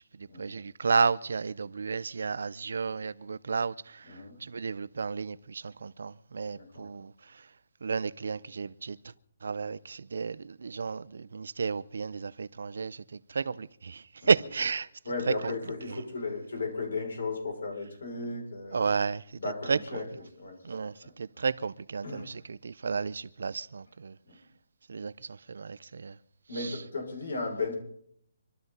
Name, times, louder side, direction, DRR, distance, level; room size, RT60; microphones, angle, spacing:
voice 1, 0.4-4.1 4.4-7.1 7.8-9.0 9.4-13.0 13.3-14.9 15.4-15.5 18.7-19.2 19.7-19.8 20.6-24.1 24.9-26.2 26.6-26.7, right 5 dB, 65° right, 0.6 m, -32 dB
voice 2, 4.1-4.4 6.5-6.9 14.2-14.3 15.0-18.9 19.4-21.1 22.0-22.3 24.3-24.4 26.5-27.7, left 3 dB, 80° left, 6.0 m, -36 dB
25.0 x 13.0 x 4.0 m
hypercardioid pair, 180°, 0 cm